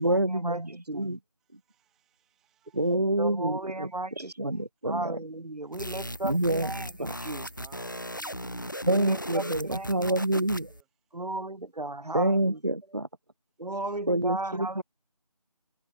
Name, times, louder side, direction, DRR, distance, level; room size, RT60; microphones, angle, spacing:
voice 1, 0.0-1.2 2.7-5.2 6.2-7.2 8.9-10.7 12.1-13.1 14.1-14.8, right 1 dB, 40° right, 1.0 m, -27 dB
voice 2, 0.9-3.0 5.6-6.1 7.5-9.1 9.3-10.2 10.7-10.9 11.3-11.4, right 12 dB, ahead, 4.5 m, -60 dB
voice 3, 3.2-4.6 4.9-6.3 6.6-6.7 7.3-7.4 9.7-9.8 11.2-12.3 13.6-14.7, right 2 dB, 85° right, 1.0 m, -34 dB
sound 1, 5.7-10.8, equal, 30° left, 0.8 m, -37 dB
figure-of-eight pair, 170°, 20 cm